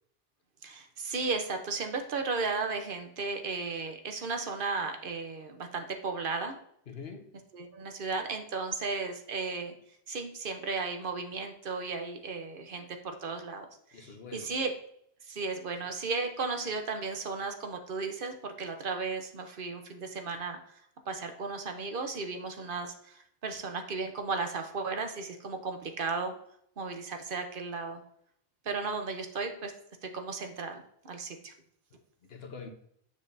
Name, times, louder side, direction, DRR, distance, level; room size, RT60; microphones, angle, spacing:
voice 1, 0.6-6.6 7.5-9.7 10.1-13.7 13.9-14.0 14.3-14.7 15.3-20.6 21.1-26.3 26.8-28.0 28.6-29.7 30.1-31.5, right 4 dB, 60° right, 5 dB, 1.0 m, -35 dB
voice 2, 6.9-7.3 13.9-14.5 15.8-15.9 32.2-32.7, left 5 dB, 75° left, 5 dB, 1.2 m, -44 dB
7.3 x 6.5 x 2.6 m, 0.70 s
omnidirectional pair, 1.0 m